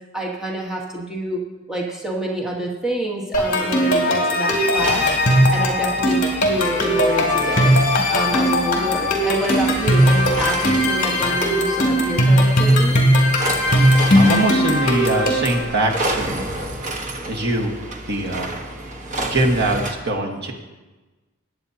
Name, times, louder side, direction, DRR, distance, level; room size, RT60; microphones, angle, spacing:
voice 1, 0.1-1.4 1.7-5.1 5.5-7.8 8.1-13.0, right 1 dB, 5° right, -3 dB, 1.3 m, -27 dB
sound 1, 3.3-15.6, equal, 40° left, 2.5 m, -18 dB
sound 2, 4.7-19.9, right 1 dB, 35° right, 1.2 m, -31 dB
voice 2, 14.1-16.4 17.3-17.7 18.1-18.5 19.2-20.5, right 2 dB, 55° right, 1 dB, 1.5 m, -22 dB
20.5 x 8.9 x 2.8 m, 1.2 s
head